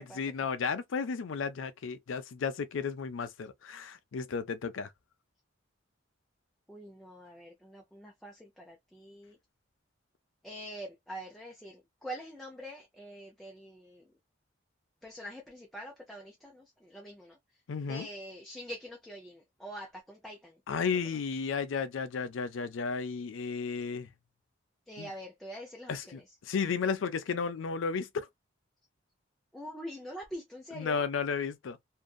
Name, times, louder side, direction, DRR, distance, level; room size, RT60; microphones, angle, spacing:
voice 1, 0.0-4.9 17.7-18.1 20.7-24.1 25.0-25.1 25.9-28.3 30.7-31.8, left 5 dB, 85° left, 0.4 m, -33 dB
voice 2, 6.7-9.4 10.4-14.0 15.0-17.3 17.8-20.9 24.9-26.2 29.5-31.0, equal, ahead, 0.5 m, -45 dB
2.6 x 2.5 x 2.2 m
head